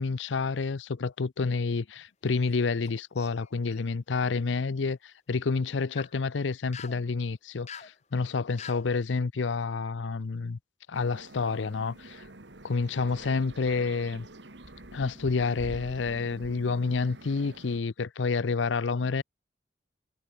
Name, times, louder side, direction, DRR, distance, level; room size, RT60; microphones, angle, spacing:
voice 1, 0.0-10.6 10.9-12.2 12.6-14.3 14.9-19.2, left 4 dB, 80° left, 0.6 m, -29 dB
sound 1, 2.2-2.9 3.2-3.8 5.7-6.1 6.7-7.0 7.7-7.9 8.6-8.9, left 7 dB, 35° left, 2.5 m, -44 dB
sound 2, 10.9-17.8, right 1 dB, 70° right, 2.2 m, -47 dB
head